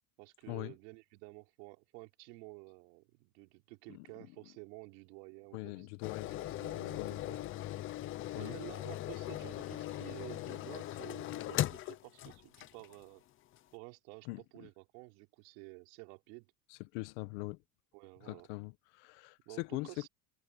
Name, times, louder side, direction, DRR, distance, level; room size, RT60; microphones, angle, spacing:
voice 1, 0.2-5.9 6.2-7.5 8.3-13.2 13.7-14.3 14.5-16.5 17.9-18.5 19.5-20.1, right 28 dB, 85° right, 4.0 m, -52 dB
voice 2, 5.5-7.2 8.3-8.6 14.2-14.7 16.7-17.6 18.2-20.1, left 23 dB, 75° left, 1.2 m, -42 dB
sound 1, 6.0-13.0 13.6-13.7, left 14 dB, 30° left, 0.5 m, -39 dB
cardioid pair, 165°, 47 cm